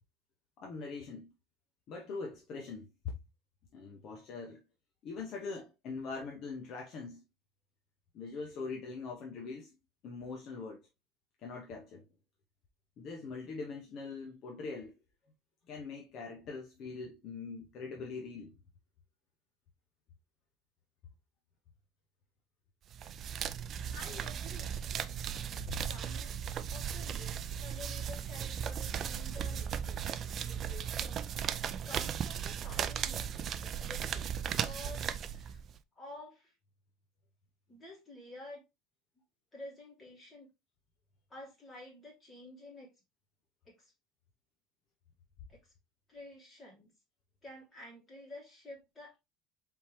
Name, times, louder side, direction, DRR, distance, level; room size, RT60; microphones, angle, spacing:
voice 1, 0.6-1.3 1.9-3.1 3.7-4.6 5.0-7.2 8.1-9.7 10.0-10.8 11.4-12.0 13.0-14.9 15.7-18.6 25.7-25.8, left 4 dB, 45° left, 0.9 m, -42 dB
sound 1, 22.9-35.8, right 8 dB, 35° right, 0.3 m, -37 dB
voice 2, 23.0-23.5 23.9-24.7 25.7-26.4 26.7-30.0 30.3-31.3 31.8-35.6 36.0-36.5 37.7-38.6 39.5-40.5 41.3-42.9 43.6-43.9 45.5-45.7 46.1-46.9 47.4-49.2, left 1 dB, 15° left, 2.8 m, -51 dB
4.3 x 3.5 x 3.0 m
cardioid pair, 145°, 0 cm